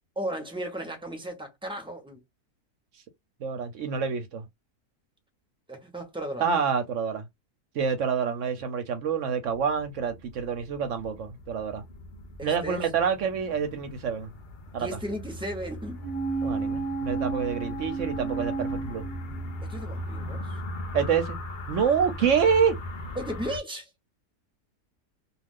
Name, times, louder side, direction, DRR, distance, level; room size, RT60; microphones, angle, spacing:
voice 1, 0.2-2.2 5.7-6.4 12.4-12.8 14.8-16.0 19.6-20.5 23.2-23.9, equal, 5° right, 0.4 m, -35 dB
voice 2, 3.4-4.4 6.4-7.3 7.7-11.8 12.4-14.3 14.7-14.9 16.4-19.0 20.9-21.4 21.7-22.8, right 6 dB, 65° right, 0.8 m, -27 dB
sound 1, 9.4-23.6, left 1 dB, 75° left, 0.4 m, -39 dB
sound 2, 16.0-19.8 20.1-20.2, right 4 dB, 30° left, 0.7 m, -32 dB
2.4 x 2.4 x 3.5 m
omnidirectional pair, 1.7 m